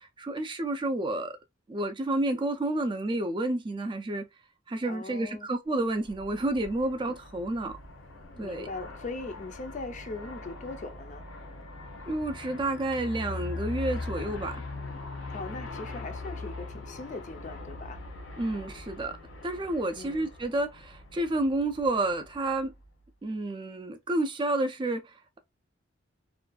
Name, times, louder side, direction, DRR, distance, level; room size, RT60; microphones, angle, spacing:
voice 1, 0.0-1.4 1.7-4.3 4.7-7.8 8.4-8.7 12.1-14.6 18.4-19.2 19.4-22.7 23.2-25.4, right 2 dB, 25° right, 0.4 m, -30 dB
voice 2, 4.8-5.5 8.3-11.3 15.3-18.0 20.0-20.3, left 3 dB, 40° left, 0.4 m, -40 dB
Aircraft, 5.8-23.1, left 2 dB, 80° left, 0.6 m, -41 dB
2.5 x 2.3 x 2.2 m
head